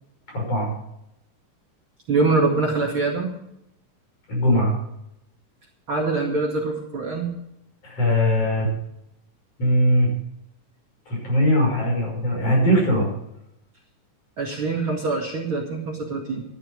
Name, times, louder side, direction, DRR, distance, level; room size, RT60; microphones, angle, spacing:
voice 1, 0.3-0.7 4.3-4.7 7.8-8.7 9.6-10.1 11.1-13.1, equal, 45° left, -1 dB, 7.2 m, -20 dB
voice 2, 2.1-3.3 5.9-7.3 14.4-16.4, right 3 dB, 40° right, -1 dB, 2.7 m, -24 dB
14.0 x 12.0 x 5.4 m, 0.80 s
omnidirectional pair, 3.9 m